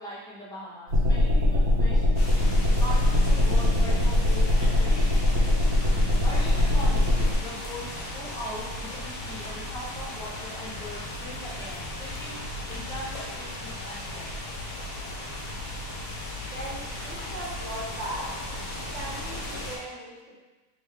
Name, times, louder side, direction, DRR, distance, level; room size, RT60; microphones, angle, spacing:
voice 1, 0.0-2.1 2.7-5.2 6.2-7.1 7.4-12.4 12.7-14.4, left 1 dB, 5° left, -8 dB, 0.5 m, -40 dB
sound 1, 0.9-7.3, left 1 dB, 75° right, 1.3 m, -22 dB
sound 2, 2.2-19.8, left 1 dB, 65° left, 1.2 m, -36 dB
voice 2, 16.4-18.3 18.9-20.4, right 1 dB, 50° right, -6 dB, 1.3 m, -38 dB
3.5 x 3.4 x 3.3 m, 1.2 s
omnidirectional pair, 1.6 m